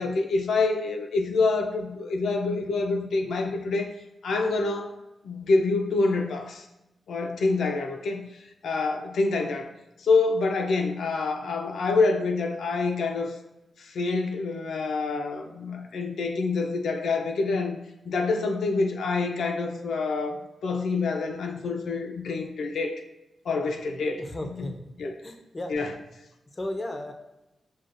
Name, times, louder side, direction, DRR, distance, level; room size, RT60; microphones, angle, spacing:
voice 1, 0.0-3.9 4.2-4.9 5.2-6.7 7.1-8.2 8.6-9.7 10.0-13.3 13.8-17.8 18.1-23.0 23.5-24.7 25.0-25.1 25.7-25.9, left 3 dB, 90° left, 4 dB, 0.4 m, -26 dB
voice 2, 24.2-25.7 26.6-27.1, left 1 dB, 20° left, 4 dB, 0.4 m, -35 dB
6.2 x 2.2 x 2.5 m, 0.94 s
wide cardioid pair, 160°, 0 cm